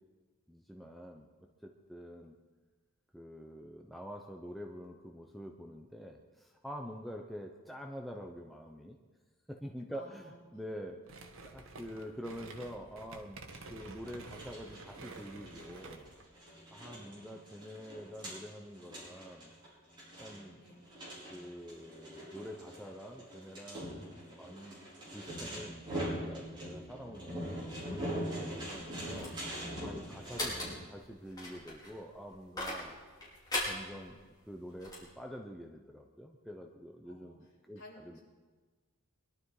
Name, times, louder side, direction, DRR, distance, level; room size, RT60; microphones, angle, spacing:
voice 1, 0.5-1.3 1.6-2.3 3.1-9.0 9.5-13.4 13.7-16.1 16.7-19.5 20.2-20.6 21.3-24.7 25.1-29.3 29.8-32.9 33.6-34.2 34.5-37.4 37.6-38.2, equal, ahead, 1 dB, 0.8 m, -46 dB
voice 2, 9.9-10.6 16.8-17.5 20.5-20.8 37.0-37.4 37.8-38.2, left 1 dB, 55° left, -5 dB, 5.3 m, -56 dB
sound 1, 11.1-16.2, right 3 dB, 65° right, 1.4 m, -50 dB
sound 2, 13.5-30.7, equal, 20° right, 6.1 m, -43 dB
sound 3, 28.5-35.1, left 1 dB, 20° left, 4.9 m, -41 dB
22.5 x 12.0 x 4.9 m, 1.4 s
head